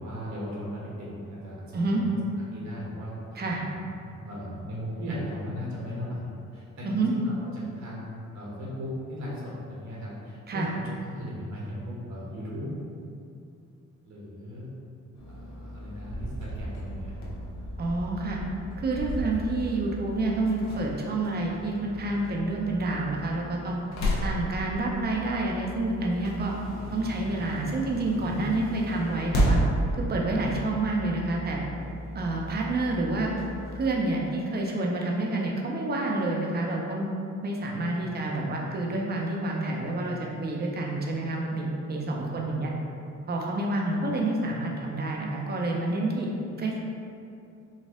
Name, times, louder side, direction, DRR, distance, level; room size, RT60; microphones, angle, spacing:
voice 1, 0.0-2.2 2.5-6.2 6.5-12.7 14.0-14.7 15.3-17.3 37.6-37.9 42.2-42.3, equal, 65° right, -6 dB, 1.3 m, -37 dB
sound 1, 15.1-33.9, equal, 65° left, 0.9 m, -34 dB
voice 2, 17.8-18.4 18.8-23.8 24.2-26.5 26.9-29.6 29.9-31.6 32.1-33.3 33.7-37.1 37.4-42.7 43.3-46.3 46.6-46.8, right 2 dB, 35° right, -1 dB, 0.6 m, -28 dB
4.2 x 2.4 x 3.6 m, 2.5 s
cardioid pair, 90°, 30 cm